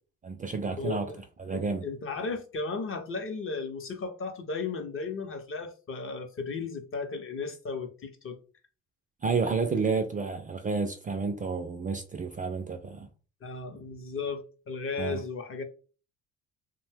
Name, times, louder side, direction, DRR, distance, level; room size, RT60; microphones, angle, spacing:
voice 1, 0.2-1.1 1.4-1.8 9.2-13.1 15.0-15.2, right 4 dB, 25° right, 0.3 m, -30 dB
voice 2, 0.8-1.2 1.5-8.4 13.4-15.6, left 4 dB, 40° left, 0.6 m, -35 dB
2.7 x 2.1 x 3.3 m
cardioid pair, 100°, 34 cm